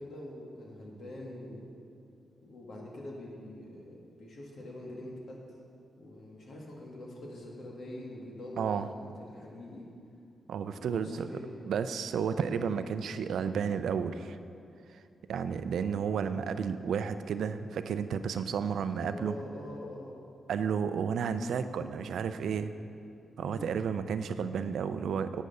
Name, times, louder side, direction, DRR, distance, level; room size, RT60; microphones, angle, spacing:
voice 1, 0.0-1.7 2.4-5.4 5.9-9.9 10.7-11.5 12.2-12.5 19.1-20.2 21.3-21.4 23.4-23.7, left 1 dB, 70° left, -2 dB, 2.1 m, -44 dB
voice 2, 8.6-8.9 10.5-11.3 11.7-14.4 14.9-15.0 15.3-19.3 20.5-22.7 23.4-25.4, right 7 dB, 80° right, 11 dB, 0.4 m, -32 dB
11.0 x 8.2 x 5.5 m, 2.5 s
cardioid pair, 60°, 0 cm